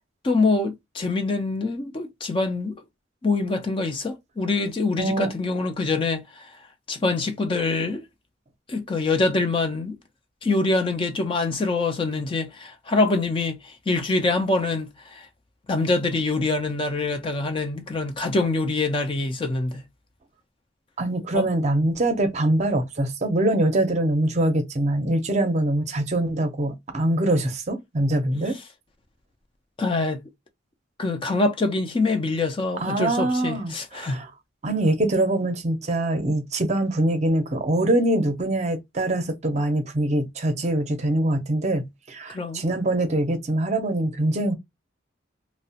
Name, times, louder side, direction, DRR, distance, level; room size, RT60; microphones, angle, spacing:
voice 1, 0.2-2.8 3.2-6.6 6.9-8.1 8.7-10.0 10.4-15.3 15.7-19.8 21.3-21.5 28.5-28.6 29.8-30.2 31.0-34.2 42.3-42.6, left 3 dB, 25° left, 0.4 m, -25 dB
voice 2, 5.0-5.3 21.0-28.6 32.8-34.3 34.6-44.5, right 1 dB, 35° right, 0.6 m, -23 dB
2.8 x 2.0 x 2.7 m
head